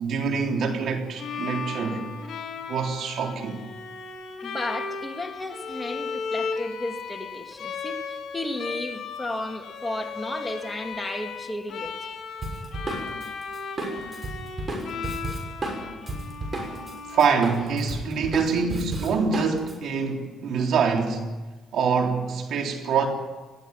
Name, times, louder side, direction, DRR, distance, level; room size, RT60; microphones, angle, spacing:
voice 1, 0.0-2.1 2.7-3.6 17.1-21.3 21.7-23.1, right 5 dB, 70° right, 3.6 m, -25 dB
Bowed string instrument, 1.2-18.1, left 5 dB, 65° left, 3.8 m, -36 dB
voice 2, 4.4-11.9, left 1 dB, 10° left, 2.5 m, -33 dB
Drum kit, 12.4-16.9 17.2-19.7, right 2 dB, 30° right, 6.5 m, -32 dB
20.0 x 15.5 x 9.5 m
cardioid pair, 90°, 0 cm